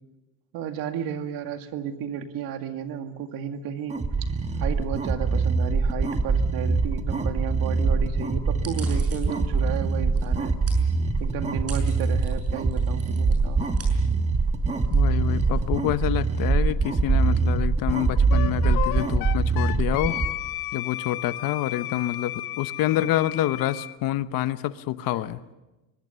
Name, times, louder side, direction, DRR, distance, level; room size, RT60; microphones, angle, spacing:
voice 1, 0.5-4.0 4.6-10.6 11.2-13.7, right 8 dB, 70° right, 6 dB, 2.1 m, -33 dB
sound 1, 3.9-20.3, right 4 dB, 20° right, 1.2 m, -23 dB
sound 2, 8.5-16.3, right 4 dB, 40° right, 6.5 m, -46 dB
voice 2, 14.9-20.2 20.7-25.5, left 13 dB, 65° left, 13 dB, 1.0 m, -27 dB
Wind instrument woodwind instrument, 18.3-23.9, left 16 dB, 90° left, 1.0 m, -33 dB
23.5 x 21.5 x 6.9 m, 1.1 s
cardioid pair, 170°, 36 cm